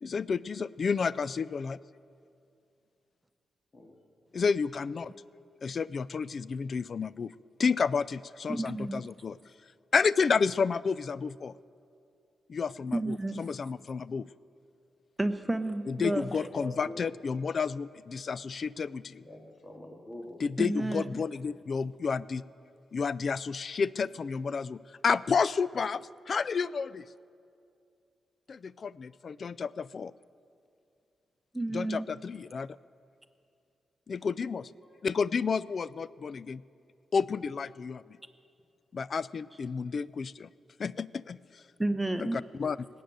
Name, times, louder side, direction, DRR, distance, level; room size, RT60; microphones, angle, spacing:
voice 1, 0.0-1.8 4.3-5.1 5.6-7.3 7.6-9.4 9.9-11.5 12.5-14.3 15.9-19.2 20.4-22.4 22.9-27.0 28.5-30.1 31.7-32.7 34.1-34.7 35.0-36.6 37.1-38.0 38.9-40.5 40.8-41.6 42.2-42.9, left 5 dB, 55° left, 20 dB, 0.3 m, -31 dB
voice 2, 8.5-9.0 12.9-13.4 15.2-16.3 20.6-21.2 31.5-32.1 41.8-42.4, right 2 dB, 10° right, 9 dB, 1.0 m, -31 dB
voice 3, 16.1-17.1 19.1-20.4 34.8-35.0, left 1 dB, 30° left, 1 dB, 2.1 m, -45 dB
19.0 x 8.5 x 7.8 m, 2.5 s
cardioid pair, 70°, 0 cm